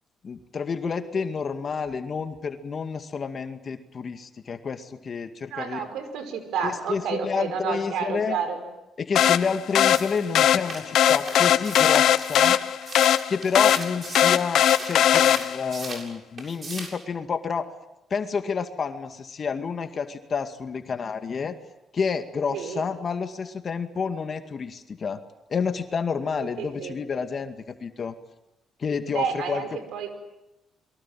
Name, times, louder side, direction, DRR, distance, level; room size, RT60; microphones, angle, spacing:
voice 1, 0.2-5.8 6.6-8.4 9.0-12.6 13.3-17.7 18.1-21.5 21.9-25.2 25.5-28.1 28.8-29.6, left 5 dB, 45° left, 7 dB, 2.1 m, -29 dB
voice 2, 5.5-8.6 22.5-22.9 26.3-27.0 29.1-30.1, right 6 dB, 85° right, 8 dB, 5.4 m, -30 dB
sound 1, 9.2-15.8, left 10 dB, 75° left, 0.9 m, -20 dB
sound 2, 9.9-16.1 16.4-17.0, right 3 dB, 40° right, 7.4 m, -38 dB
29.5 x 23.5 x 7.6 m, 0.93 s
cardioid pair, 90°, 0 cm